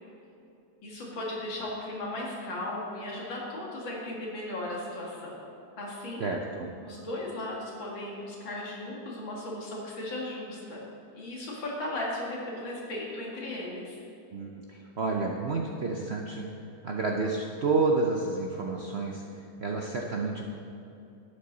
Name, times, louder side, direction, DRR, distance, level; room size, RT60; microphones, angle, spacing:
voice 1, 0.8-5.4 5.8-6.2 6.8-10.9 11.1-14.0, left 1 dB, 75° left, -4 dB, 2.8 m, -36 dB
voice 2, 6.2-6.7 14.3-16.5 16.8-19.2 19.6-20.5, right 3 dB, 80° right, 0 dB, 0.5 m, -30 dB
11.5 x 8.7 x 4.0 m, 2.7 s
omnidirectional pair, 2.1 m